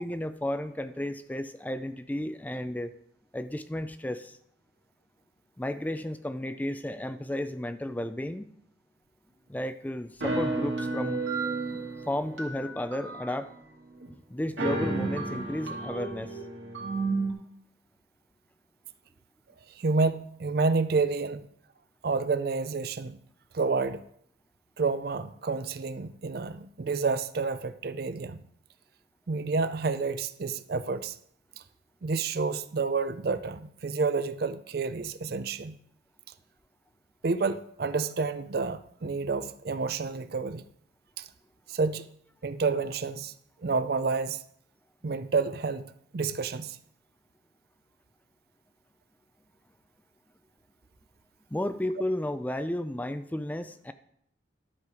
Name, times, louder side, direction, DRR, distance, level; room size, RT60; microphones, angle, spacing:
voice 1, 0.0-2.9 3.3-4.4 5.6-8.5 9.5-11.2 12.1-13.5 14.3-16.4 51.5-53.9, left 1 dB, 10° left, 0.4 m, -33 dB
sound 1, 10.2-13.6 14.0-14.1 14.4-17.3, right 3 dB, 75° right, 2.2 m, -32 dB
voice 2, 19.8-21.4 22.0-23.2 23.5-24.0 24.8-28.4 29.3-31.2 32.0-35.8 37.2-40.6 41.2-41.3 41.7-42.1 42.4-43.3 43.6-44.4 45.0-46.8, right 4 dB, 55° right, 0.5 m, -29 dB
12.0 x 6.7 x 4.8 m
head